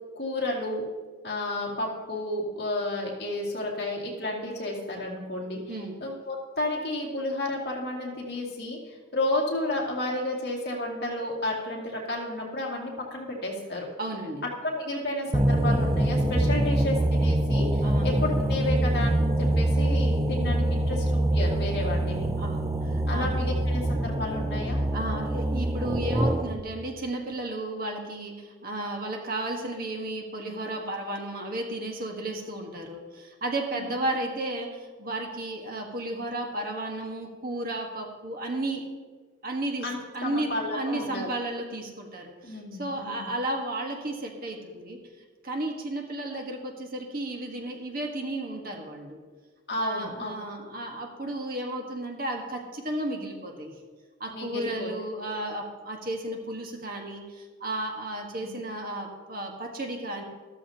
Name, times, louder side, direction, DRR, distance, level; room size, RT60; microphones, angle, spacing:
voice 1, 0.2-0.8 1.2-5.6 6.0-13.9 14.6-22.3 23.1-24.8 33.7-33.9 39.8-41.3 42.4-43.3 49.7-50.4 54.3-54.9 58.4-58.5, left 2 dB, 50° left, -3 dB, 2.3 m, -32 dB
voice 2, 5.4-6.0 14.0-14.4 17.8-18.1 22.4-23.3 24.9-38.9 39.4-45.0 45.4-49.2 49.8-53.7 54.2-60.2, right 1 dB, 45° right, 2 dB, 1.4 m, -33 dB
sound 1, 15.3-26.6, right 1 dB, 15° right, 0.4 m, -25 dB
13.5 x 13.0 x 2.9 m, 1.4 s
head